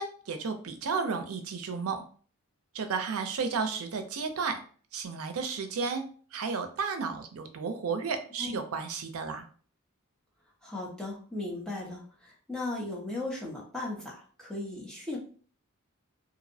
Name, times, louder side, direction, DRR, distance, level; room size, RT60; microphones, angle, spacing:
voice 1, 0.0-2.0 2.7-4.6 4.9-6.1 6.3-9.4, right 5 dB, 80° right, 7 dB, 0.4 m, -33 dB
voice 2, 10.6-15.2, left 2 dB, 5° left, -4 dB, 0.6 m, -37 dB
2.6 x 2.0 x 2.6 m, 0.42 s
head